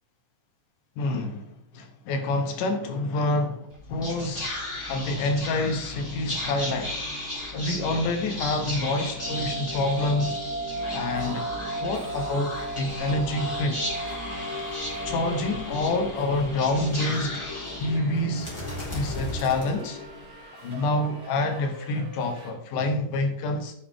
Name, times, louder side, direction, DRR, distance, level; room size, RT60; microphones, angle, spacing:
voice 1, 1.0-4.5 4.9-7.0 7.5-10.4 10.9-11.5 11.8-13.8 15.0-17.4 17.8-18.5 18.9-20.0 20.6-23.7, left 2 dB, 70° left, 2.5 m, -27 dB
Whispering, 3.7-20.3, left 2 dB, 10° left, 3.0 m, -35 dB
sound 1, 9.1-16.2, right 3 dB, 85° right, 0.9 m, -36 dB
Subway metro underground, 10.8-22.5, right 2 dB, 45° right, 2.9 m, -47 dB
9.8 x 7.6 x 3.5 m
omnidirectional pair, 4.0 m